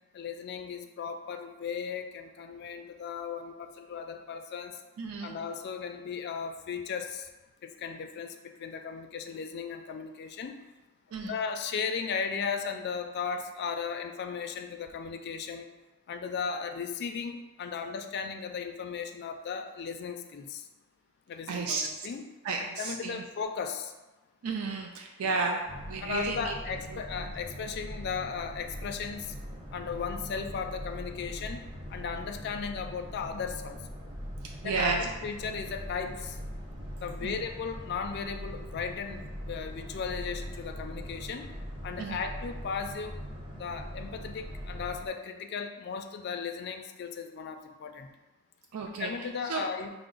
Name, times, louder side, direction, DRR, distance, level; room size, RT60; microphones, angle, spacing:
voice 1, 0.1-4.8 5.2-7.3 7.6-10.6 11.2-15.7 16.1-20.6 21.3-22.2 22.8-23.9 26.0-29.3 29.7-33.8 34.6-36.4 37.0-41.5 41.8-43.2 43.5-48.1 49.0-49.9, left 6 dB, 50° left, 6 dB, 0.3 m, -36 dB
voice 2, 5.0-5.4 11.1-11.3 21.5-21.9 22.4-23.2 24.4-26.5 26.9-27.3 34.6-35.1 37.2-37.4 42.0-42.2 48.7-49.7, right 4 dB, 70° right, 2 dB, 0.3 m, -33 dB
Boat Water vehicle, 25.7-45.1, equal, 20° right, 0.5 m, -41 dB
4.5 x 2.0 x 3.8 m, 1.1 s
head